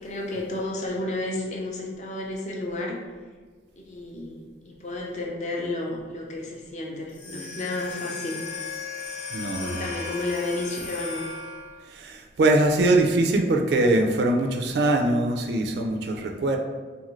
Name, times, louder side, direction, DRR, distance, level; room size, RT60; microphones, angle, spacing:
voice 1, 0.0-3.0 3.7-8.4 9.6-11.2, left 2 dB, 40° left, -1 dB, 0.4 m, -32 dB
sound 1, 7.1-11.9, left 5 dB, 85° left, 0.6 m, -36 dB
voice 2, 9.3-9.8 11.9-16.6, right 2 dB, 65° right, 3 dB, 0.3 m, -22 dB
2.6 x 2.5 x 3.0 m, 1.4 s
head